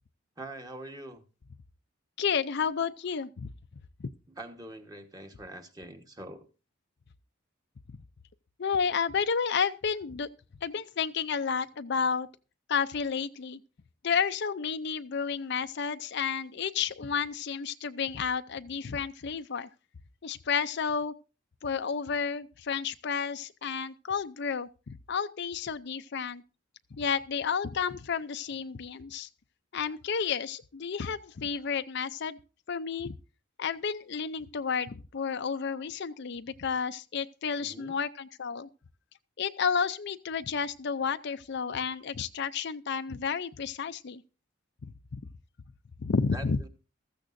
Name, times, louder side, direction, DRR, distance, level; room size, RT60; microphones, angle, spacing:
voice 1, 0.4-1.2 4.3-6.4 37.6-37.9 46.3-46.7, right 1 dB, 20° right, 1.3 m, -44 dB
voice 2, 2.2-3.5 4.0-4.1 8.6-10.3 10.6-12.3 12.7-13.6 14.0-19.7 20.2-21.1 21.6-26.4 26.9-29.3 29.7-32.4 32.7-33.2 33.6-38.7 39.4-44.2 44.8-44.9 46.0-46.6, left 6 dB, 55° left, 0.5 m, -31 dB
15.0 x 14.0 x 2.6 m
head